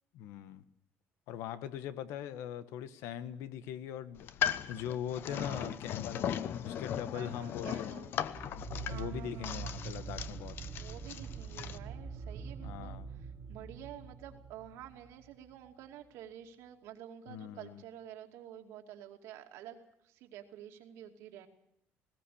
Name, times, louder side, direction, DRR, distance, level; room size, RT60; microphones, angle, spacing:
voice 1, 0.1-0.6 1.3-6.3 6.6-7.9 8.5-8.6 8.9-10.6 12.6-13.1 17.3-17.8, left 10 dB, 85° left, 13 dB, 1.3 m, -41 dB
sound 1, 4.2-11.8, left 9 dB, 50° left, 0.9 m, -38 dB
voice 2, 5.3-5.8 7.1-8.1 8.9-9.7 10.7-21.5, right 10 dB, 80° right, 4 dB, 2.6 m, -49 dB
sound 2, 8.2-15.6, right 5 dB, 30° right, 2.2 m, -44 dB
19.5 x 17.5 x 8.5 m, 0.75 s
cardioid pair, 155°, 5 cm